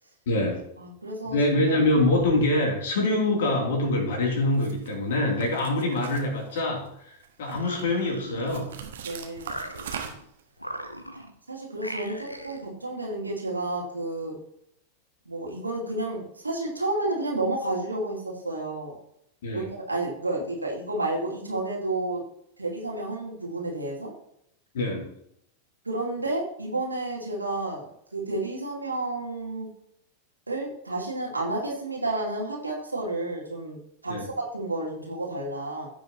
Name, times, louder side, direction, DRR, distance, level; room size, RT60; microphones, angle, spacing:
voice 1, 0.3-0.6 1.2-8.7 19.4-19.6 24.7-25.0 34.1-34.3, left 2 dB, 60° left, 0 dB, 3.2 m, -25 dB
voice 2, 0.8-1.8 9.0-9.6 11.1-11.2 11.5-14.4 15.3-19.0 19.5-22.2 22.6-24.1 25.8-29.7 30.5-33.8 34.0-35.9, right 2 dB, 80° right, -1 dB, 2.5 m, -31 dB
sound 1, 4.5-4.9 5.4-6.9 7.2-7.8 8.5-10.4, right 8 dB, 60° right, 1.3 m, -40 dB
sound 2, 7.4-9.0 9.4-10.2 10.6-11.4 11.8-12.7, equal, 90° left, 0.9 m, -39 dB
15.5 x 6.3 x 3.0 m, 0.75 s
figure-of-eight pair, 90°, 0 cm